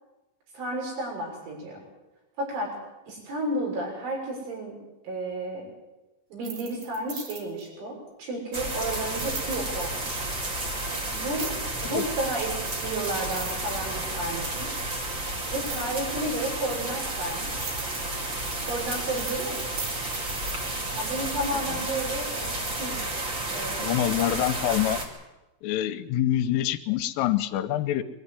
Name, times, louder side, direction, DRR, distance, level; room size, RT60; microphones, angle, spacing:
voice 1, 0.5-1.8 2.4-2.8 3.1-4.8 5.0-5.7 6.3-10.3 11.1-11.5 11.8-14.9 15.5-17.7 18.6-19.9 21.0-23.0 23.5-24.0 24.7-24.8, right 1 dB, 70° right, -1 dB, 8.9 m, -32 dB
sound 1, 6.3-7.7 9.2-9.5 11.3-11.8 12.7-12.8 13.1-14.2 15.6-15.9 16.8-20.6, right 6 dB, 55° right, 3.9 m, -38 dB
sound 2, 8.5-25.1, right 1 dB, 35° right, 2.3 m, -32 dB
voice 2, 23.8-25.0 25.6-28.0, left 12 dB, 80° left, 9 dB, 3.4 m, -26 dB
22.5 x 13.5 x 9.8 m, 1.0 s
omnidirectional pair, 5.8 m